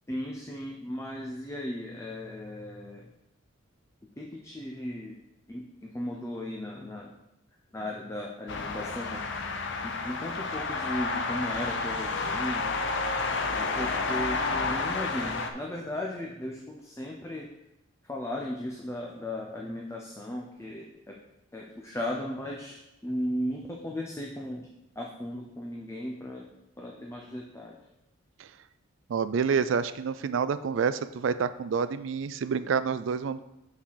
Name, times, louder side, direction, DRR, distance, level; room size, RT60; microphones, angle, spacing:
voice 1, 0.1-3.1 4.2-5.2 5.5-7.2 7.7-9.2 9.8-12.8 13.5-17.5 18.0-21.2 21.5-24.7 24.9-26.5 26.8-27.8, left 1 dB, 15° left, -1 dB, 0.6 m, -36 dB
sound 1, 8.5-15.5, left 3 dB, 60° left, 0.7 m, -30 dB
voice 2, 29.1-33.4, right 6 dB, 65° right, 13 dB, 0.4 m, -28 dB
5.9 x 4.2 x 6.3 m, 0.87 s
head